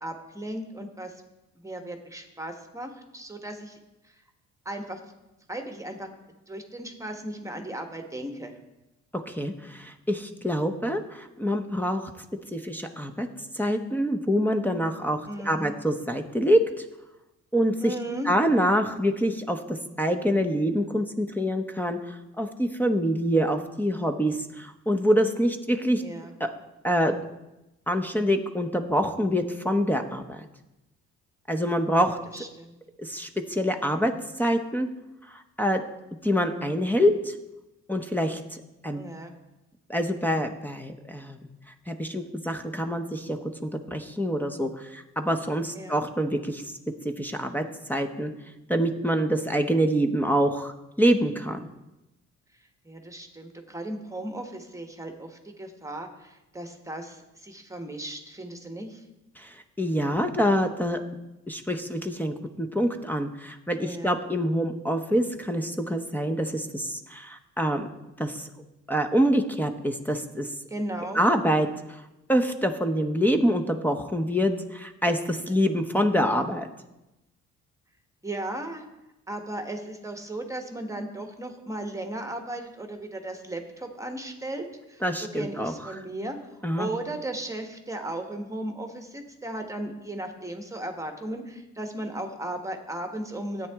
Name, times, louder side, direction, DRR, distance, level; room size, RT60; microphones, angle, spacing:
voice 1, 0.0-1.2 1.5-3.8 4.0-4.1 4.6-5.0 5.5-6.1 6.5-8.6 15.3-15.8 17.8-18.3 26.0-26.3 32.1-32.8 38.9-39.3 45.7-46.0 52.8-59.1 63.8-64.2 70.7-71.2 78.2-78.9 79.3-86.4 86.8-93.7, right 1 dB, 10° right, 4 dB, 1.3 m, -36 dB
voice 2, 9.3-12.2 12.5-13.3 13.5-15.2 15.4-16.8 17.5-17.9 18.2-26.0 26.4-26.5 26.8-27.1 27.9-30.5 31.5-32.2 33.0-34.1 34.4-34.9 35.3-35.8 36.2-37.3 37.9-39.0 39.9-41.4 41.9-46.6 47.0-47.6 47.9-48.3 48.7-51.7 59.4-61.0 61.5-67.9 68.2-68.5 68.9-70.5 71.1-72.0 72.3-76.7 85.0-86.0 86.6-86.9, equal, 5° left, 5 dB, 0.9 m, -26 dB
13.0 x 8.8 x 3.6 m, 0.96 s
cardioid pair, 90°, 30 cm